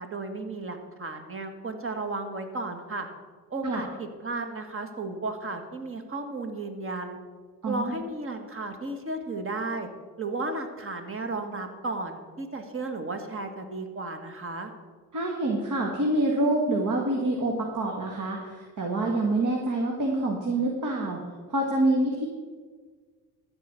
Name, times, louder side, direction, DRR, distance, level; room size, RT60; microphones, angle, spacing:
voice 1, 0.0-3.1 3.5-7.2 7.7-9.9 10.2-14.7, right 2 dB, 35° right, 6 dB, 1.8 m, -34 dB
voice 2, 7.6-8.0 15.1-21.2 21.5-22.2, right 2 dB, 50° right, 0 dB, 2.0 m, -26 dB
13.5 x 5.0 x 8.2 m, 1.5 s
cardioid pair, 90°, 39 cm